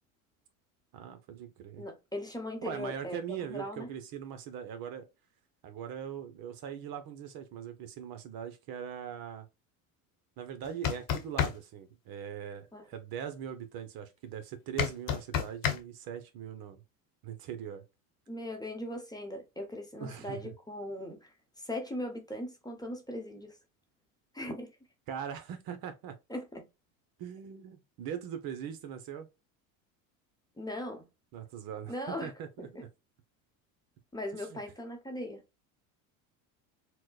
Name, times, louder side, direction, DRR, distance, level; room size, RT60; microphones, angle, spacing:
voice 1, 0.9-1.8 2.6-5.1 5.6-9.5 10.4-16.8 17.2-17.8 20.0-20.5 25.1-26.1 27.2-29.3 31.3-32.9 34.3-34.6, right 8 dB, 55° right, 0.8 m, -41 dB
voice 2, 1.8-3.9 12.7-12.9 18.3-23.6 24.3-24.7 26.3-26.7 30.6-31.1 31.9-32.3 32.7-32.8 34.1-35.4, left 1 dB, 10° left, 0.9 m, -39 dB
sound 1, 10.6-11.6 14.8-15.8, left 9 dB, 50° left, 1.0 m, -29 dB
4.4 x 2.2 x 2.3 m
supercardioid pair, 95°, 43 cm